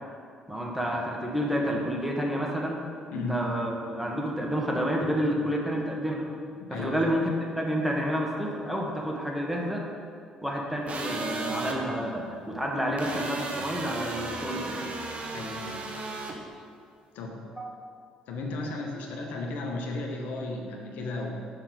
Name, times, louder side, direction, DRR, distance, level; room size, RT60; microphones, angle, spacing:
voice 1, 0.5-2.8 3.1-6.3 6.7-9.9 10.4-14.9 17.6-17.7, equal, 5° right, -1 dB, 1.5 m, -29 dB
voice 2, 3.1-3.4 6.6-7.2 15.3-15.9 17.1-17.4 18.3-21.4, left 2 dB, 65° left, 1 dB, 0.9 m, -34 dB
sound 1, 10.9-11.8 13.0-16.3, right 3 dB, 45° right, 1.0 m, -35 dB
5.7 x 5.7 x 5.2 m, 2.2 s
hypercardioid pair, 55°, 3 cm